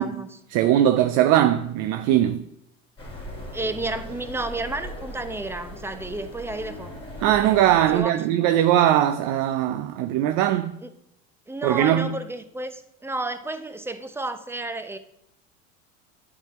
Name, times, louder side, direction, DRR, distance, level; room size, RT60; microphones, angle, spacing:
voice 1, 0.0-0.4 3.5-6.9 7.9-8.2 10.8-10.9 11.5-15.0, right 2 dB, 5° right, 0.6 m, -31 dB
voice 2, 0.5-2.4 7.2-10.7 11.6-12.2, right 12 dB, 50° right, 0.5 m, -20 dB
sound 1, 3.0-8.0, left 1 dB, 15° left, 2.4 m, -39 dB
9.0 x 3.8 x 5.8 m
hypercardioid pair, 85°, 38 cm